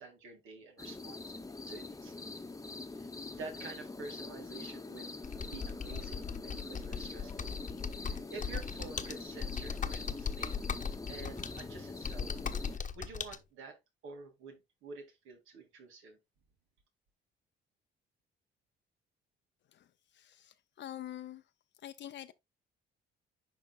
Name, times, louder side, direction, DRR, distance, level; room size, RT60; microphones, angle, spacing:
voice 1, 0.0-1.4 1.7-2.4 2.9-5.1 5.4-7.5 7.9-10.5 11.1-12.3 12.6-13.8 14.0-16.2, right 4 dB, 85° right, 2.6 m, -49 dB
sound 1, 0.8-12.8, left 3 dB, 15° left, 0.9 m, -44 dB
Computer keyboard, 5.2-13.4, left 6 dB, 40° left, 1.0 m, -39 dB
voice 2, 19.7-21.4 21.8-22.3, left 12 dB, 65° left, 0.6 m, -46 dB
11.0 x 3.8 x 2.4 m
cardioid pair, 90°, 20 cm